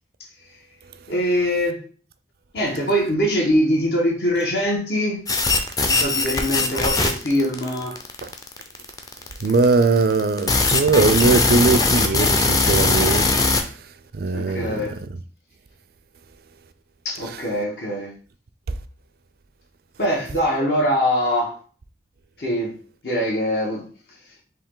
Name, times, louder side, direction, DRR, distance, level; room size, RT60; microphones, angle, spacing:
voice 1, 1.1-1.8 2.5-5.2 5.8-8.0 14.3-15.0 17.0-18.1 20.0-21.6 22.4-22.7 23.0-23.8, equal, 65° left, 1.3 m, -22 dB
sound 1, 5.3-13.6, left 3 dB, 20° left, 0.5 m, -20 dB
voice 2, 9.4-13.2 14.2-14.8, right 3 dB, 60° right, 0.4 m, -19 dB
4.7 x 2.9 x 3.7 m
head